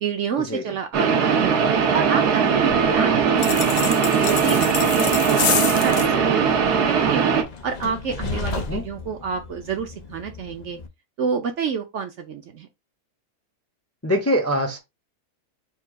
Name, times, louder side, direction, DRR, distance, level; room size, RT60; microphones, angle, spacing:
voice 1, 0.0-1.6 1.9-7.2 7.6-10.8 11.2-12.7, right 6 dB, 60° right, 0.9 m, -29 dB
sound 1, 0.9-7.4, right 6 dB, 85° right, 1.4 m, -20 dB
Train, 2.5-10.9, left 4 dB, 75° left, 0.4 m, -36 dB
sound 2, 3.4-6.1, left 7 dB, 60° left, 0.8 m, -27 dB
voice 2, 14.0-14.8, equal, 15° left, 0.5 m, -23 dB
4.4 x 2.4 x 4.6 m
omnidirectional pair, 1.7 m